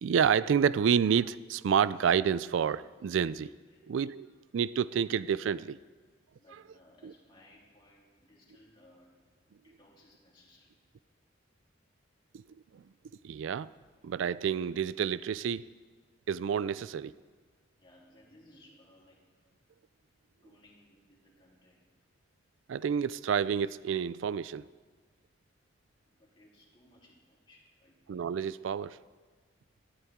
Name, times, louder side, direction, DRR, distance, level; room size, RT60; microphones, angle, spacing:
voice 1, 0.0-3.5 3.9-5.8 7.0-7.1 12.3-12.4 12.7-12.8 13.2-13.7 14.0-15.6 16.3-17.1 22.7-24.6 28.1-29.0, right 7 dB, 85° right, 0.3 m, -29 dB
voice 2, 6.4-9.3 9.6-10.7 17.8-19.3 20.4-21.9 26.1-28.0, left 1 dB, 25° left, 3.4 m, -61 dB
18.5 x 13.5 x 3.7 m
head